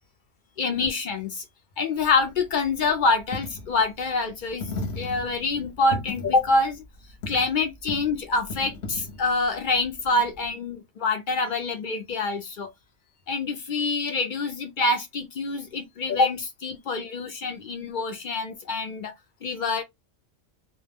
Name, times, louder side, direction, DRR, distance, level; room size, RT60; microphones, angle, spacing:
voice 1, 0.6-1.4 1.8-6.8 7.3-12.7 13.3-19.1 19.4-19.8, left 3 dB, 65° left, 0.5 m, -26 dB
Coin (dropping), 2.0-10.5, left 2 dB, 50° left, 0.8 m, -38 dB
2.2 x 2.1 x 3.3 m
omnidirectional pair, 1.4 m